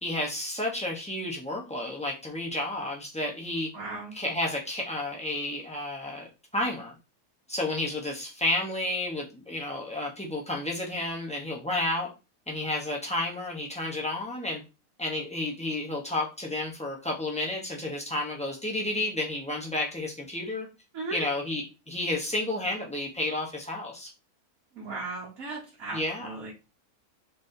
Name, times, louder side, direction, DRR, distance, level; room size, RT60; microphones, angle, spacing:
voice 1, 0.0-3.7 4.1-6.3 6.5-6.9 7.5-12.1 12.5-14.6 15.0-20.7 21.1-24.1 25.9-26.3, left 1 dB, 5° left, -1 dB, 0.6 m, -31 dB
voice 2, 3.7-4.1 20.9-21.3 24.7-26.5, right 3 dB, 70° right, -4 dB, 1.5 m, -37 dB
4.1 x 3.2 x 2.7 m, 0.29 s
omnidirectional pair, 1.6 m